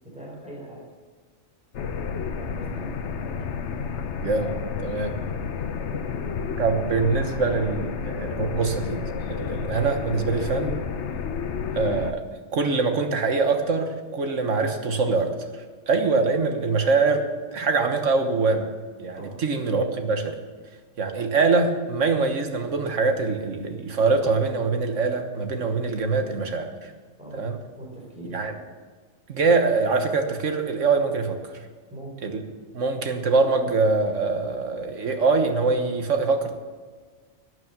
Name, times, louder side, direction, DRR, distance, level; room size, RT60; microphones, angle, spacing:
voice 1, 0.0-0.8 2.3-2.9 19.1-19.4 27.2-27.5 27.8-28.4 31.9-32.3, right 1 dB, 5° right, -3 dB, 4.8 m, -41 dB
sound 1, 1.7-12.1, left 6 dB, 65° left, 1.1 m, -31 dB
voice 2, 4.2-5.2 6.6-10.8 11.7-12.2 12.5-17.3 17.5-18.7 19.0-20.4 21.0-26.9 27.4-27.6 28.3-28.5 29.3-31.4 32.2-32.4 32.7-36.5, right 4 dB, 75° right, 6 dB, 1.5 m, -24 dB
12.5 x 9.8 x 7.2 m, 1.4 s
omnidirectional pair, 1.3 m